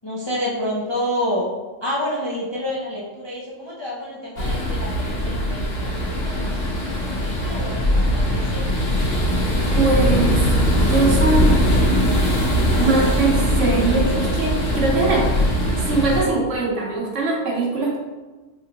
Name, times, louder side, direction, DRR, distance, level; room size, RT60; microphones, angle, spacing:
voice 1, 0.0-1.5 1.8-6.5 7.0-8.8, left 1 dB, 35° left, -6 dB, 0.4 m, -28 dB
sound 1, 4.4-16.2, equal, 90° left, 1.4 m, -20 dB
voice 2, 9.7-10.4 10.8-11.6 12.8-15.3 15.6-18.0, right 3 dB, 75° right, -2 dB, 1.2 m, -21 dB
5.4 x 2.6 x 2.8 m, 1.3 s
omnidirectional pair, 1.3 m